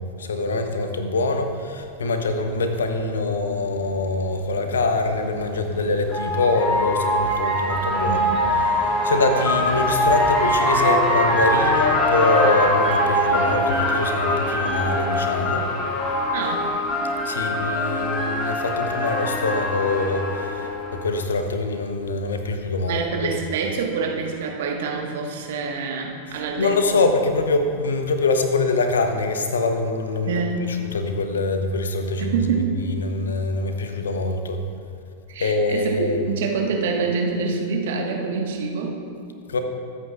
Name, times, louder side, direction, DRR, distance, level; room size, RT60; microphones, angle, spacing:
voice 1, 0.2-8.3 9.0-15.7 17.2-23.0 26.6-30.4 30.8-32.3 32.9-34.6 35.4-36.2 39.5-39.6, left 3 dB, 70° left, 6 dB, 1.0 m, -24 dB
sound 1, 3.9-4.0 5.4-21.0, left 1 dB, 25° left, 3.1 m, -23 dB
voice 2, 8.0-8.4 16.3-16.7 22.9-27.0 30.2-30.6 32.2-32.8 35.3-39.0, right 5 dB, 55° right, 0 dB, 1.6 m, -26 dB
21.5 x 8.5 x 2.5 m, 2.4 s
figure-of-eight pair, 90°, 0 cm